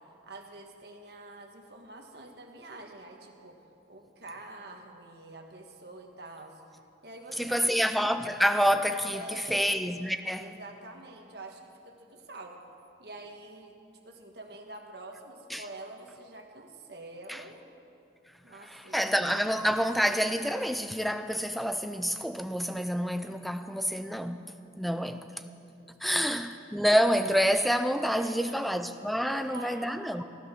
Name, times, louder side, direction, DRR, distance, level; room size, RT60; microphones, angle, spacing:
voice 1, 0.2-3.6 3.9-6.6 7.0-7.9 9.1-9.6 10.4-12.6 13.0-13.8 14.1-17.6 18.4-19.1 24.8-25.2 25.7-26.3 28.1-28.6 29.2-30.0, right 2 dB, 60° right, 1.6 m, -47 dB
voice 2, 7.4-10.5 15.5-15.6 17.3-17.4 18.6-24.5 24.8-25.3 26.0-30.2, equal, ahead, 0.5 m, -28 dB
16.0 x 12.0 x 6.3 m
head